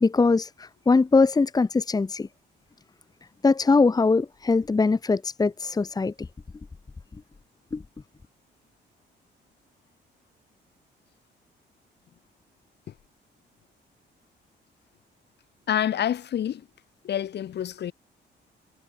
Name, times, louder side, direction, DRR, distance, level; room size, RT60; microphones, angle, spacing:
voice 1, 0.0-2.3 3.4-6.1 7.7-7.8, left 4 dB, 20° left, 1.5 m, -21 dB
voice 2, 15.7-16.7 17.0-17.9, left 10 dB, 65° left, 6.2 m, -27 dB
cardioid pair, 135°, 19 cm